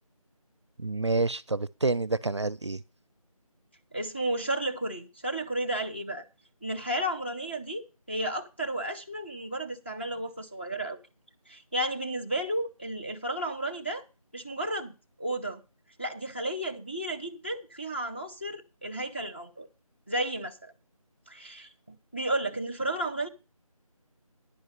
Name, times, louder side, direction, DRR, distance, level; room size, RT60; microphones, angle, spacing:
voice 1, 0.8-2.8, right 3 dB, 50° right, 0.5 m, -28 dB
voice 2, 3.9-6.3 6.6-11.0 11.5-14.0 14.3-15.6 16.0-19.7 20.1-20.7 21.3-23.3, right 1 dB, 20° left, 0.6 m, -33 dB
10.5 x 5.3 x 7.8 m
figure-of-eight pair, 175°, 19 cm